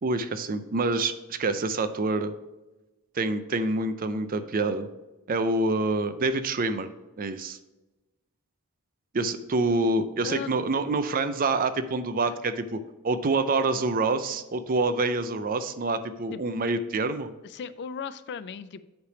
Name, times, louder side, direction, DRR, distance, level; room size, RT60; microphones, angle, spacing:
voice 1, 0.0-2.3 3.1-4.9 5.3-6.9 7.2-7.6 9.1-12.8 13.0-17.3, right 3 dB, 40° right, 10 dB, 0.5 m, -26 dB
voice 2, 17.4-18.8, left 6 dB, 50° left, 14 dB, 0.3 m, -36 dB
8.1 x 3.3 x 5.0 m, 1.1 s
head